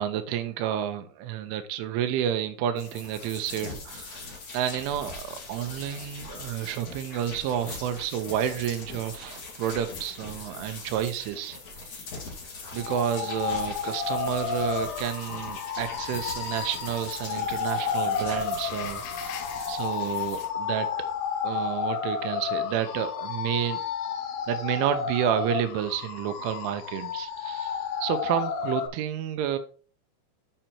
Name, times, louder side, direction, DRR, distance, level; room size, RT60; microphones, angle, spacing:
voice 1, 0.0-11.6 12.7-21.1 21.4-23.8 24.5-29.6, right 10 dB, 80° right, 9 dB, 3.2 m, -30 dB
sound 1, 2.8-20.5, left 3 dB, 45° left, 2.3 m, -41 dB
sound 2, 12.8-28.9, left 6 dB, 80° left, 3.3 m, -31 dB
9.0 x 5.6 x 4.3 m, 0.40 s
omnidirectional pair, 5.7 m